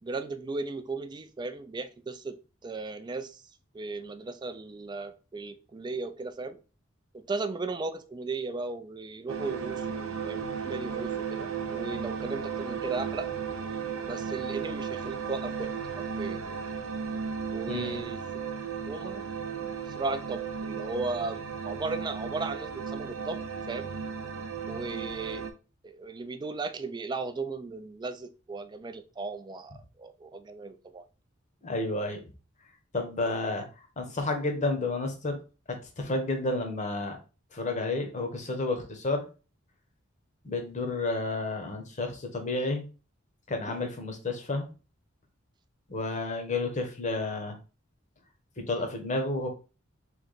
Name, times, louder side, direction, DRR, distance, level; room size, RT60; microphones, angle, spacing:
voice 1, 0.0-3.4 3.7-6.6 7.1-13.3 14.1-16.6 17.5-18.2 18.9-19.3 19.9-23.9 24.7-25.5 25.8-31.1 43.7-43.8, right 3 dB, 20° right, 0.3 m, -36 dB
sound 1, 9.3-25.5, right 6 dB, 85° right, 0.5 m, -35 dB
voice 2, 17.7-18.0 31.6-32.2 32.9-33.6 34.0-35.4 35.7-37.2 37.5-39.2 40.4-42.8 43.5-44.7 45.9-47.6 48.6-49.5, left 2 dB, 35° left, 0.8 m, -31 dB
3.1 x 2.8 x 3.9 m
head